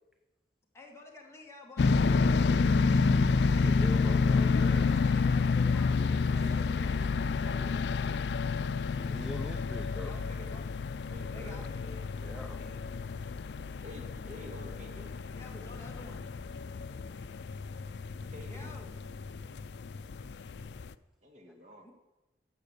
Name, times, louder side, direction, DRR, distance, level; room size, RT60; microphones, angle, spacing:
voice 1, 0.7-2.0 4.5-6.0 6.3-7.2 10.0-10.7 11.2-12.0 12.4-12.9 15.3-16.3 18.4-19.0 21.8-21.9, left 2 dB, 15° left, -1 dB, 2.1 m, -50 dB
sound 1, 1.8-20.9, left 4 dB, 70° left, 0.4 m, -29 dB
voice 2, 3.6-4.9 9.1-10.1 12.2-12.6, equal, 5° right, 5 dB, 0.6 m, -43 dB
voice 3, 5.9-8.3 11.1-11.6 13.8-15.1 18.3-18.8 21.2-21.9, left 1 dB, 40° right, 2 dB, 2.0 m, -50 dB
12.0 x 7.5 x 8.2 m, 1.1 s
head